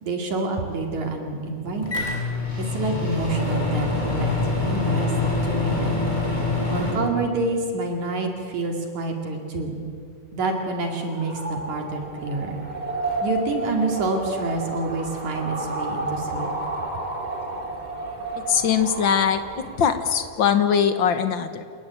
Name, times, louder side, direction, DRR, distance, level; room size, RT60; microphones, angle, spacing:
voice 1, 0.0-2.1 2.6-6.1 6.7-9.8 10.3-12.6 13.2-16.5, right 3 dB, 65° right, 3 dB, 3.7 m, -28 dB
Microwave oven, 1.8-6.9, left 3 dB, 10° left, 6.3 m, -25 dB
sound 1, 10.9-20.7, right 2 dB, 15° right, 3.6 m, -32 dB
voice 2, 18.5-21.6, left 7 dB, 65° left, 9 dB, 1.1 m, -21 dB
29.0 x 16.5 x 9.7 m, 2.3 s
omnidirectional pair, 3.7 m